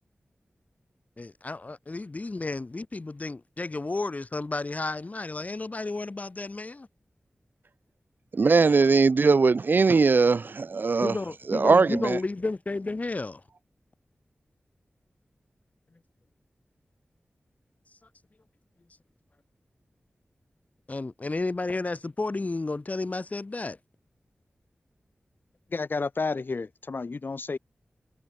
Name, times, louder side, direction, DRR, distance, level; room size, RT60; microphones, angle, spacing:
voice 1, 1.2-6.9 11.0-13.4 20.9-23.8, left 3 dB, 40° left, 2.1 m, -32 dB
voice 2, 8.3-11.1 11.5-12.2, right 4 dB, 55° right, 0.5 m, -20 dB
voice 3, 25.7-27.6, left 4 dB, 60° left, 3.5 m, -31 dB
wide cardioid pair, 75°, 4 cm